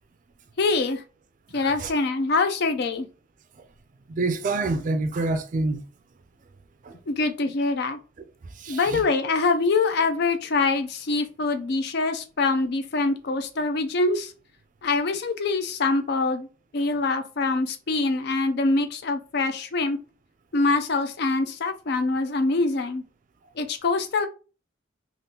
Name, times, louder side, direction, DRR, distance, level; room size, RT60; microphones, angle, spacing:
voice 1, 0.6-1.0 1.5-3.1 7.1-8.0 8.7-14.3 14.8-16.5 16.7-20.0 20.5-23.0 23.6-24.3, left 3 dB, 55° left, 0.4 m, -24 dB
voice 2, 4.1-5.8 6.9-7.0 8.6-9.0, right 2 dB, 40° right, 0.4 m, -26 dB
3.5 x 2.5 x 2.7 m
head